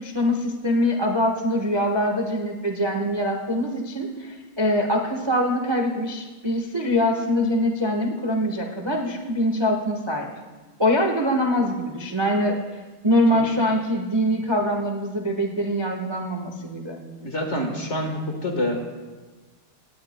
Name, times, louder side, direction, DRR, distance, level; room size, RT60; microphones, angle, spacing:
voice 1, 0.0-10.3 10.8-12.6 13.0-17.0, equal, 20° right, 1 dB, 0.8 m, -23 dB
voice 2, 17.2-18.8, left 1 dB, 35° left, 2 dB, 1.5 m, -27 dB
18.0 x 17.0 x 2.2 m, 1.3 s
omnidirectional pair, 2.3 m